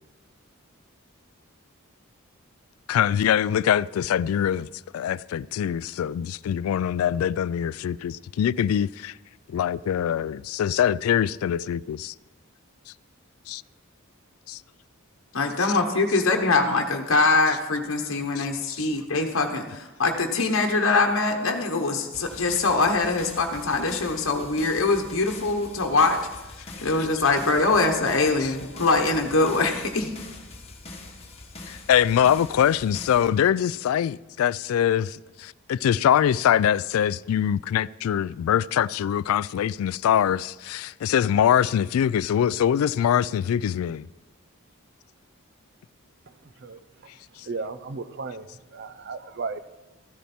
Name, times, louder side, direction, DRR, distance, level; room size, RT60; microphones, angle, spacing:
voice 1, 2.9-4.7 4.9-9.2 9.5-12.1 13.5-13.6 14.5-14.6 18.4-18.5 18.8-18.9 28.4-28.5 31.7-44.0, left 9 dB, 90° left, 0.3 m, -23 dB
voice 2, 15.3-26.2 26.8-30.1, left 3 dB, 70° left, 1.1 m, -23 dB
sound 1, 22.1-33.3, left 2 dB, 30° left, 1.4 m, -43 dB
voice 3, 46.3-46.8 47.4-48.5 48.7-49.6, right 4 dB, 55° right, 0.6 m, -35 dB
13.5 x 10.5 x 4.3 m
head